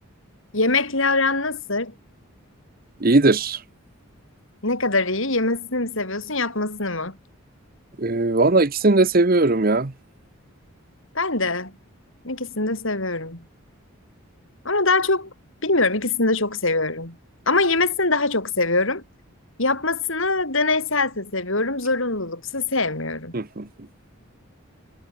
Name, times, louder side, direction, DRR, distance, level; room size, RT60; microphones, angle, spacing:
voice 1, 0.5-1.9 4.6-7.2 11.1-11.8 12.2-13.4 14.6-15.3 15.6-17.2 17.5-19.0 19.6-23.4, left 3 dB, 65° left, 5.5 m, -23 dB
voice 2, 3.0-3.6 8.0-9.9 23.3-23.7, right 2 dB, 40° right, 0.9 m, -19 dB
head